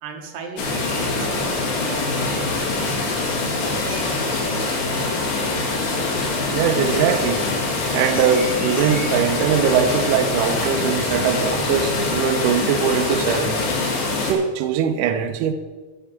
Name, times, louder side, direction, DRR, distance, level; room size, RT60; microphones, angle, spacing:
voice 1, 0.0-2.9, right 4 dB, 60° right, 2.9 m, -36 dB
sound 1, 0.6-14.3, left 3 dB, 85° left, 4.6 m, -24 dB
sound 2, 0.6-9.3, equal, 10° left, 2.5 m, -41 dB
voice 2, 6.5-7.4 7.9-13.6 14.2-15.5, right 7 dB, 90° right, 1.8 m, -21 dB
11.5 x 7.9 x 7.3 m
omnidirectional pair, 4.8 m